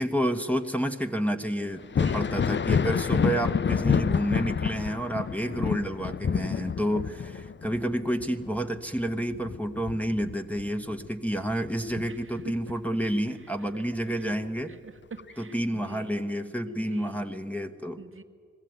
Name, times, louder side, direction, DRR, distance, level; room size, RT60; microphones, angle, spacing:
voice 1, 0.0-14.7 15.4-18.0, equal, 5° left, 3 dB, 1.3 m, -30 dB
Thunder, 1.8-11.1 11.5-12.7 14.3-14.4 15.2-15.3, left 6 dB, 40° left, 0.5 m, -28 dB
voice 2, 2.0-2.6 6.4-6.7 12.1-12.5 13.6-14.3 14.7-16.1 16.7-17.3 18.0-18.2, right 4 dB, 45° right, 5 dB, 1.2 m, -46 dB
21.0 x 15.0 x 9.3 m, 2.2 s
cardioid pair, 40°, 29 cm